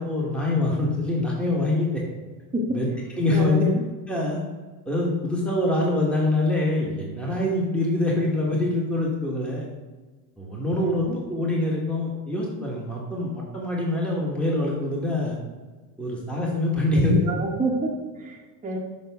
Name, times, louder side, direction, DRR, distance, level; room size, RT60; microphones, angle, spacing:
voice 1, 0.0-2.0 2.7-2.9 3.1-3.6 4.1-4.4 4.8-9.7 10.4-15.4 16.0-17.3, left 2 dB, ahead, -3 dB, 1.3 m, -24 dB
voice 2, 3.3-3.8 10.8-11.2 16.9-17.9 18.2-18.8, right 1 dB, 15° right, 0 dB, 1.0 m, -28 dB
6.6 x 5.4 x 3.5 m, 1.3 s
supercardioid pair, 110°, 48 cm